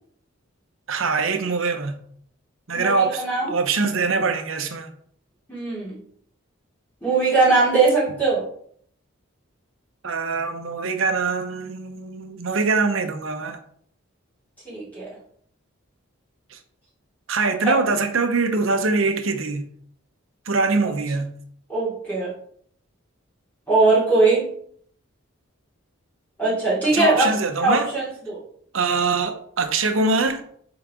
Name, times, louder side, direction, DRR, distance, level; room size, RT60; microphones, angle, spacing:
voice 1, 0.9-1.9 2.7-4.9 10.0-13.6 16.5-16.6 17.3-19.7 20.5-21.3 26.8-27.9 28.7-30.4, right 4 dB, 70° right, 0.8 m, -23 dB
voice 2, 2.7-3.5 5.5-6.0 7.0-8.4 14.6-15.1 17.6-17.8 20.8-20.9 21.7-22.3 23.7-24.5 26.4-27.3 27.6-28.4, right 3 dB, 10° left, 3.0 m, -20 dB
8.2 x 4.0 x 3.7 m
head